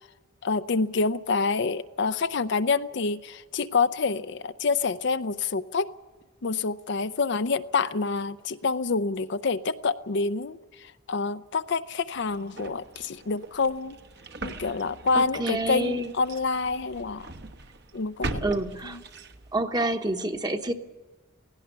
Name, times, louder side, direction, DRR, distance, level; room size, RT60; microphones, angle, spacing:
voice 1, 0.4-5.9 6.4-14.0 14.4-17.3 17.9-18.4, left 4 dB, 55° left, 12 dB, 0.5 m, -27 dB
sound 1, 12.1-19.6, right 2 dB, 50° right, 1.1 m, -40 dB
voice 2, 15.1-16.1 18.4-19.0 19.5-20.7, right 1 dB, 20° right, 7 dB, 1.0 m, -28 dB
17.0 x 16.5 x 9.6 m, 1.3 s
head